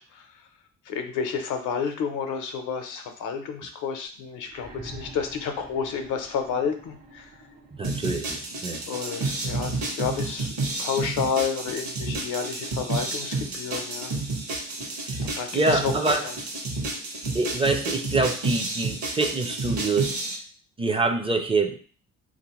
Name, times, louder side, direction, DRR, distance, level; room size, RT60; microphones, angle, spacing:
voice 1, 0.9-7.3 8.9-10.5 10.8-14.1 15.2-15.9 16.2-16.3, left 6 dB, 85° left, 6 dB, 0.6 m, -30 dB
sound 1, 4.4-8.3 9.5-9.6, right 1 dB, 85° right, 1.1 m, -46 dB
voice 2, 7.7-8.8 15.0-15.3 15.5-16.3 17.3-20.2 20.8-21.8, right 3 dB, 20° right, 6 dB, 0.4 m, -25 dB
sound 2, 7.8-20.3, right 2 dB, 65° right, 1.0 m, -30 dB
3.3 x 2.6 x 2.9 m, 0.42 s
cardioid pair, 90°, 30 cm